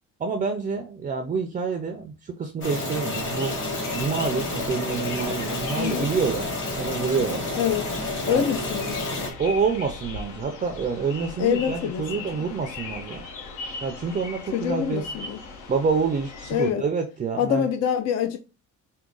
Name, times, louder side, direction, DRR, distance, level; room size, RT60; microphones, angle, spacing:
voice 1, 0.2-3.5 3.9-6.5 6.8-7.4 8.3-8.4 9.4-13.2 13.8-15.0 15.7-17.7, right 5 dB, 25° right, 0.4 m, -27 dB
sound 1, 2.6-9.3, left 2 dB, 40° left, 1.6 m, -30 dB
sound 2, 3.1-16.7, left 3 dB, 75° left, 1.2 m, -39 dB
voice 2, 5.8-6.1 7.5-7.9 8.3-9.0 11.4-12.5 14.5-15.4 16.5-16.8 17.4-18.4, left 9 dB, 55° left, 0.6 m, -25 dB
4.7 x 2.3 x 3.8 m
cardioid pair, 150°, 31 cm